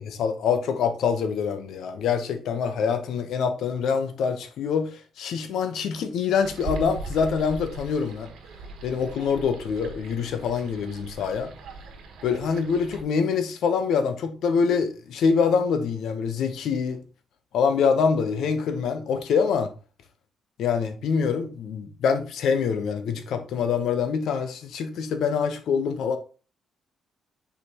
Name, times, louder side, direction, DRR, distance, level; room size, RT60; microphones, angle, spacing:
voice 1, 0.0-8.3 8.8-11.5 12.2-17.0 17.5-19.7 20.6-26.2, left 6 dB, 70° left, 0.9 m, -25 dB
sound 1, 6.4-13.0, right 3 dB, 90° right, 1.3 m, -40 dB
6.7 x 5.0 x 2.9 m
cardioid pair, 175°, 0 cm